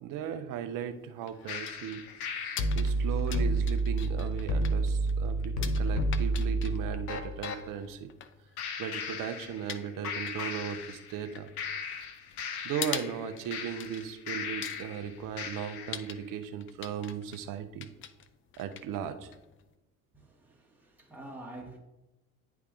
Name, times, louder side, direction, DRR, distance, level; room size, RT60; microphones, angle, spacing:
voice 1, 0.0-2.0 2.7-8.1 8.8-11.5 12.6-17.9 18.6-19.3, right 8 dB, 45° right, 0.8 m, -37 dB
sound 1, 0.7-19.7, left 9 dB, 30° left, 0.5 m, -45 dB
sound 2, 1.5-7.6 8.6-9.8 10.0-11.3 11.6-15.0 15.4-16.0, right 1 dB, 80° left, 0.8 m, -32 dB
voice 2, 20.1-21.8, right 1 dB, 5° right, 1.6 m, -47 dB
9.6 x 3.6 x 3.6 m
figure-of-eight pair, 65°, 44 cm